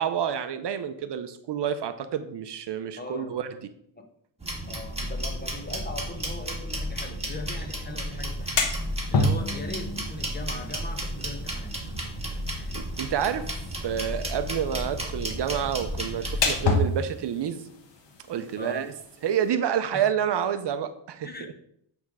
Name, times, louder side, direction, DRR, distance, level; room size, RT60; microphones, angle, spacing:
voice 1, 0.0-3.5 12.7-13.6 13.8-17.6 18.3-18.9 19.2-21.3, right 9 dB, 60° right, 10 dB, 0.6 m, -28 dB
voice 2, 3.0-3.4 4.0-4.1 4.7-11.8 12.5-12.8 18.6-18.9 19.9-20.1 21.2-21.6, left 2 dB, 20° left, 4 dB, 1.0 m, -40 dB
sound 1, 4.4-16.7, equal, 10° right, 1.7 m, -33 dB
sound 2, 8.2-19.5, left 3 dB, 60° left, 1.2 m, -32 dB
8.5 x 3.5 x 4.8 m, 0.70 s
cardioid pair, 100°, 48 cm